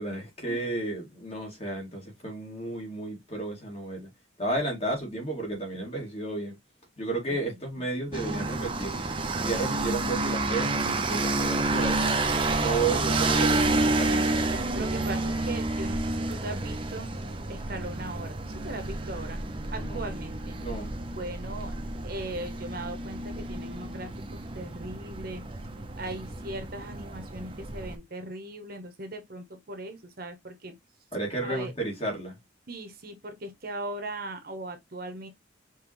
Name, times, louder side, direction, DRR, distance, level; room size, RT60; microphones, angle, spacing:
voice 1, 0.0-4.1 4.4-6.5 7.0-9.1 9.4-12.1 12.6-14.3 19.8-20.0 20.6-20.9 31.1-32.4, right 2 dB, 30° left, 2.1 m, -32 dB
sound 1, 8.1-27.9, right 2 dB, 25° right, 0.7 m, -29 dB
voice 2, 14.7-17.2 17.5-19.4 19.7-20.6 21.2-21.8 22.0-25.4 26.0-30.7 31.4-31.7 32.7-35.3, right 1 dB, 50° right, 0.9 m, -39 dB
5.2 x 3.1 x 3.1 m
head